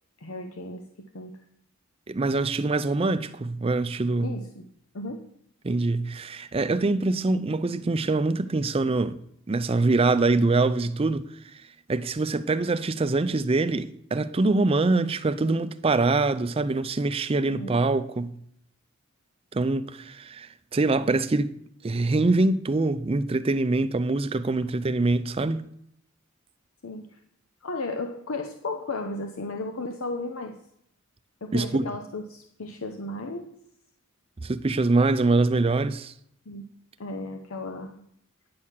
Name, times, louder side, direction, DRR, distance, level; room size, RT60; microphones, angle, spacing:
voice 1, 0.2-0.9 1.1-1.4 4.2-4.6 4.9-5.2 17.5-17.8 26.8-27.2 27.6-30.6 31.4-33.5 36.5-36.7 37.0-38.1, left 2 dB, 75° left, 0.8 m, -34 dB
voice 2, 2.1-4.4 5.6-9.2 9.5-11.3 11.9-18.4 19.5-21.5 21.8-25.7 31.5-31.8 34.4-36.1, right 3 dB, 25° right, 0.4 m, -24 dB
9.5 x 6.4 x 7.3 m
head